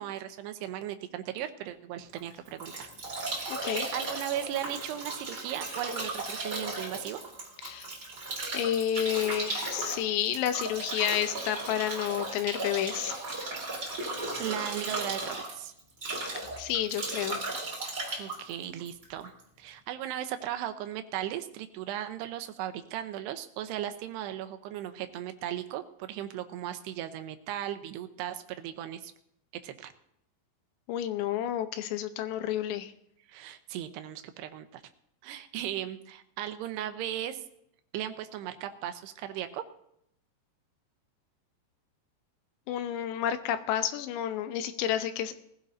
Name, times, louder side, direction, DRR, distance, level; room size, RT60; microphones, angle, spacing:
voice 1, 0.0-2.9 3.4-3.6 3.9-7.2 14.4-15.7 18.2-19.3 19.6-29.1 29.6-29.9 33.3-34.8 35.2-37.4 37.9-39.6, right 11 dB, 80° right, 9 dB, 2.7 m, -37 dB
Bathtub (filling or washing) / Drip / Trickle dribble, 2.2-19.4, right 2 dB, 25° right, 3.5 m, -36 dB
voice 2, 3.5-3.9 7.6-7.9 8.5-13.1 16.6-17.4 30.9-32.9 42.7-45.3, left 11 dB, 85° left, 9 dB, 2.9 m, -30 dB
21.0 x 15.5 x 2.6 m, 0.73 s
omnidirectional pair, 5.1 m